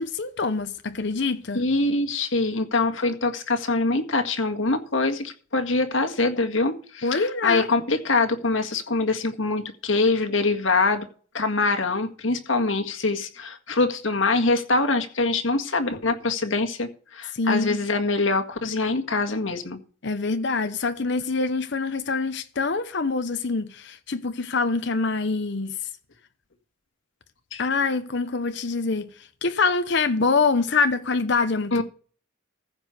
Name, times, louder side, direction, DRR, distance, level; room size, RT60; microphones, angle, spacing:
voice 1, 0.0-1.7 7.0-7.7 17.3-17.8 20.0-25.7 27.6-29.1 29.4-31.8, left 4 dB, 65° left, 0.9 m, -25 dB
voice 2, 1.5-11.1 11.3-19.8 27.5-27.7 31.7-31.8, left 3 dB, 80° left, 1.9 m, -24 dB
15.0 x 5.4 x 6.7 m
head